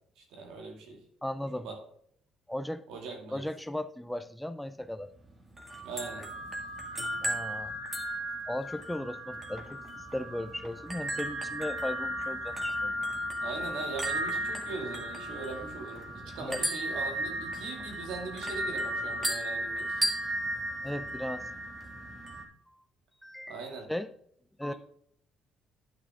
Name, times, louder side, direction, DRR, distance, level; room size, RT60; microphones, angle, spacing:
voice 1, 0.2-1.0 1.5-1.8 2.9-3.5 5.8-6.3 13.4-20.1 23.5-23.9 24.7-24.8, right 4 dB, 85° right, 2 dB, 2.4 m, -40 dB
voice 2, 1.2-1.7 2.5-2.8 3.3-5.1 7.2-7.8 8.5-12.9 16.4-16.6 20.8-21.5 22.7-22.8 23.2-24.1 24.6-24.7, left 1 dB, 5° left, 12 dB, 0.4 m, -37 dB
sound 1, 5.6-22.4, right 1 dB, 20° right, 1.7 m, -35 dB
10.5 x 6.0 x 3.7 m, 0.66 s
cardioid pair, 120°, 0 cm